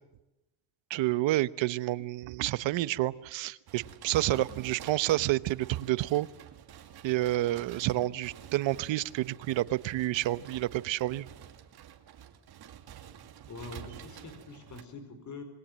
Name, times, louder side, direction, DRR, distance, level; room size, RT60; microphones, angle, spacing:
voice 1, 0.9-6.3 7.0-11.3, right 16 dB, 90° right, 16 dB, 1.1 m, -29 dB
sound 1, 3.7-14.8, right 9 dB, 55° right, 2.7 m, -49 dB
voice 2, 13.5-15.4, left 3 dB, 40° left, 9 dB, 4.8 m, -45 dB
27.0 x 22.5 x 7.6 m, 0.95 s
cardioid pair, 175°, 44 cm